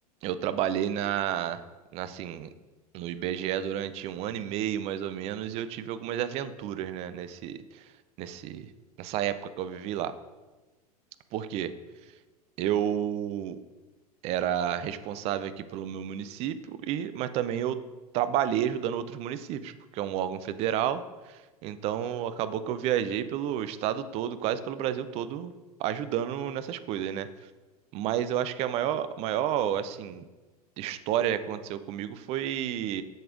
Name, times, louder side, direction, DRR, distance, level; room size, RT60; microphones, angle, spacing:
voice 1, 0.2-1.6 1.9-2.5 2.9-7.6 8.2-8.7 9.0-10.1 11.3-11.7 12.6-13.6 14.2-16.6 16.8-17.8 18.1-21.0 21.3-25.5 25.8-27.3 27.9-30.2 30.8-33.0, right 10 dB, 30° right, 13 dB, 0.4 m, -30 dB
7.8 x 6.6 x 2.5 m, 1.2 s
figure-of-eight pair, 90°, 20 cm